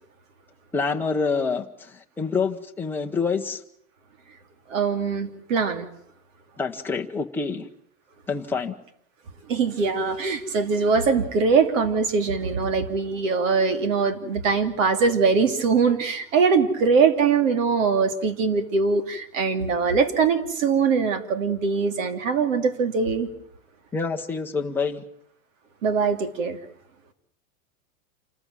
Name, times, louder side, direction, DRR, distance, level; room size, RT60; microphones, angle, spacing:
voice 1, 0.7-3.6 6.6-7.7 8.3-8.7 23.9-25.0, left 5 dB, 5° left, 0.9 m, -27 dB
voice 2, 4.7-5.9 9.5-23.3 25.8-26.6, right 5 dB, 60° right, 3.0 m, -22 dB
28.0 x 14.0 x 9.2 m
supercardioid pair, 165°, 42 cm